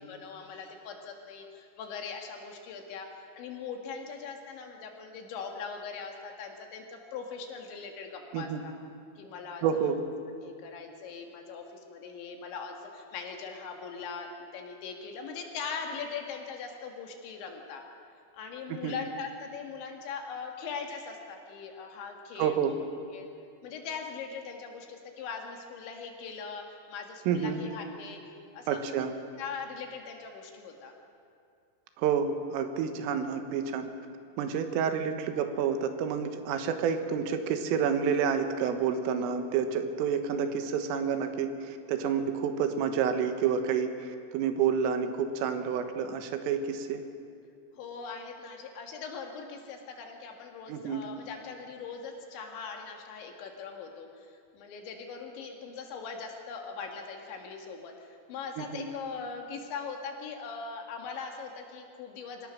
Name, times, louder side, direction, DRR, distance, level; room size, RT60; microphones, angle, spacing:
voice 1, 0.0-3.1 3.4-8.7 9.2-10.0 10.4-17.8 18.3-22.8 23.1-23.3 23.6-28.2 28.5-29.1 29.3-30.9 47.7-62.5, left 5 dB, 70° left, 2 dB, 3.9 m, -41 dB
voice 2, 9.6-10.0 18.7-19.0 22.4-22.7 27.3-27.6 28.7-29.1 32.0-33.9 34.4-47.0 50.7-51.0 58.6-58.9, right 7 dB, 80° right, 7 dB, 3.8 m, -29 dB
25.5 x 18.0 x 6.4 m, 2.4 s
omnidirectional pair, 5.8 m